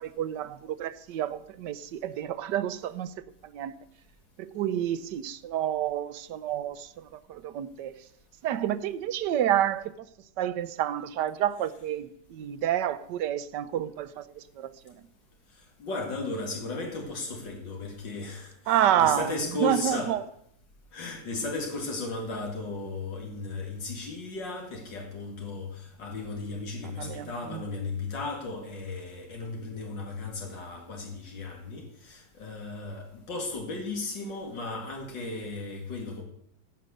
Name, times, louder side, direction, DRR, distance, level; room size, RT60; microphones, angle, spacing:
voice 1, 0.0-3.1 3.4-3.7 4.4-7.9 8.4-9.9 10.4-15.0 18.7-19.3 19.6-20.2 27.0-27.6, right 11 dB, 75° right, 1.3 m, -29 dB
voice 2, 15.5-20.1 20.9-36.2, left 3 dB, 85° left, 2.9 m, -35 dB
15.0 x 8.1 x 6.5 m
omnidirectional pair, 1.9 m